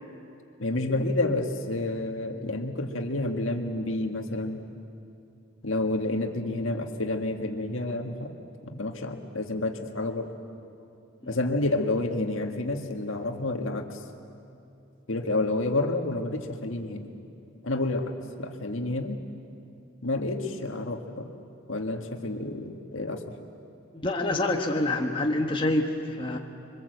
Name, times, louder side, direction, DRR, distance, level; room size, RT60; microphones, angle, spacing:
voice 1, 0.6-4.6 5.6-8.4 8.7-10.3 11.3-14.0 15.1-17.1 17.6-19.2 20.0-21.3 21.7-23.2, left 2 dB, 75° left, 4 dB, 1.8 m, -29 dB
voice 2, 24.0-26.4, left 2 dB, 25° left, 1 dB, 1.3 m, -26 dB
26.5 x 23.5 x 8.0 m, 2.6 s
head